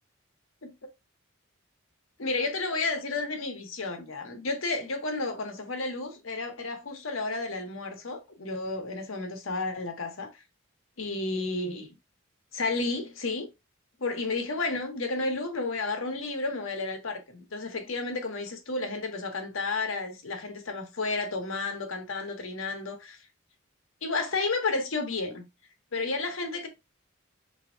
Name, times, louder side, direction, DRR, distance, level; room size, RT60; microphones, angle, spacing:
voice 1, 2.2-10.3 11.0-11.9 12.5-13.5 14.0-23.2 24.0-25.5 25.9-26.7, left 3 dB, 75° left, 1.0 m, -32 dB
3.4 x 2.9 x 3.7 m
head